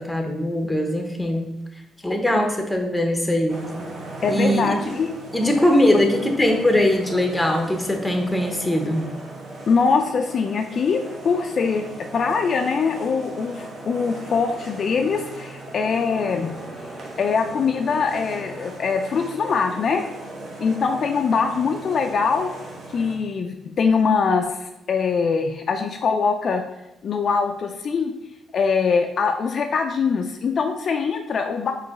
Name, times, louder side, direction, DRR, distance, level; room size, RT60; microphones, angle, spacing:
voice 1, 0.0-1.5 2.0-3.7 4.3-4.8 5.3-9.1, left 1 dB, 5° left, 3 dB, 0.8 m, -21 dB
sound 1, 3.5-23.1, right 2 dB, 50° right, 1.3 m, -38 dB
voice 2, 4.2-5.1 5.4-5.5 9.7-11.9 12.1-16.5 17.2-20.1 20.6-22.5 22.9-26.6 27.0-28.1 28.5-31.7, left 5 dB, 50° left, 5 dB, 0.3 m, -22 dB
4.8 x 3.0 x 3.5 m, 0.92 s
cardioid pair, 90°, 0 cm